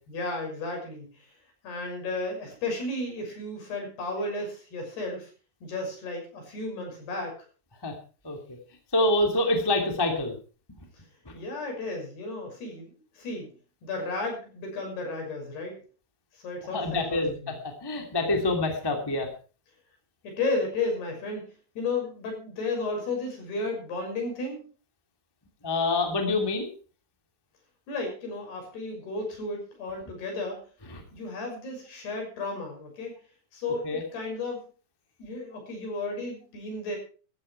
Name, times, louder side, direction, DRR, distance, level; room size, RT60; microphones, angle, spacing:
voice 1, 0.1-1.3 1.6-5.3 5.6-7.4 11.3-13.5 13.8-15.8 16.3-17.6 18.2-18.4 20.2-24.6 27.9-30.6 31.1-33.1 33.5-34.7 35.2-37.0, left 2 dB, 55° left, 2 dB, 8.1 m, -33 dB
voice 2, 8.2-8.6 8.9-10.3 16.7-17.5 17.8-19.3 25.6-26.7 30.9-31.0 33.8-34.0, left 2 dB, 15° left, 3 dB, 0.8 m, -26 dB
14.5 x 14.0 x 4.7 m, 0.38 s
omnidirectional pair, 5.8 m